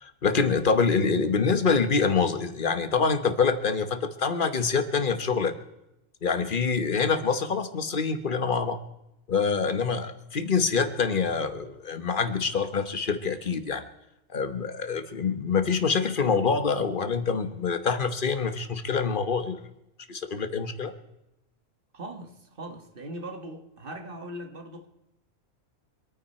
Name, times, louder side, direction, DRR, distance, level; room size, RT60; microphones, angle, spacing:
voice 1, 0.0-5.5 6.2-8.8 9.3-13.8 14.3-19.6 20.1-20.9, left 5 dB, 45° left, 1.2 m, -25 dB
voice 2, 21.9-24.9, right 1 dB, 45° right, 1.6 m, -40 dB
25.0 x 9.4 x 4.3 m
omnidirectional pair, 1.3 m